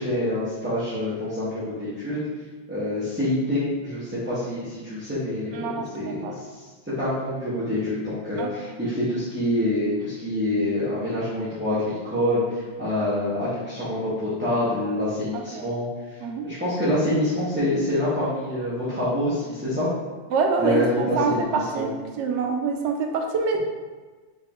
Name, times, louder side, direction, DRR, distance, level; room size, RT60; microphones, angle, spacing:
voice 1, 0.0-2.2 2.7-6.6 7.0-15.9 16.4-19.9 20.6-21.9, left 1 dB, 10° right, -12 dB, 1.1 m, -26 dB
voice 2, 5.5-6.4 8.4-8.5 15.3-15.7 16.2-16.5 20.3-21.9 22.2-23.6, right 4 dB, 90° right, 3 dB, 0.9 m, -26 dB
3.7 x 3.7 x 3.7 m, 1.3 s
omnidirectional pair, 1.2 m